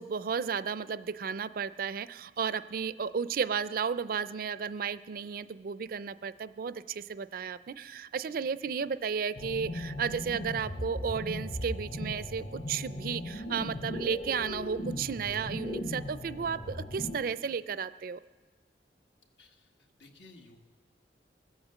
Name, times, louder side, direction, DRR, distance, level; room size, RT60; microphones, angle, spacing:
voice 1, 0.0-18.2, right 6 dB, 55° right, 15 dB, 0.4 m, -33 dB
sound 1, 9.4-17.2, left 1 dB, 40° left, 0.8 m, -38 dB
voice 2, 19.4-19.7 20.0-20.6, left 2 dB, 85° left, 3 dB, 1.5 m, -55 dB
19.0 x 8.0 x 7.5 m, 1.5 s
head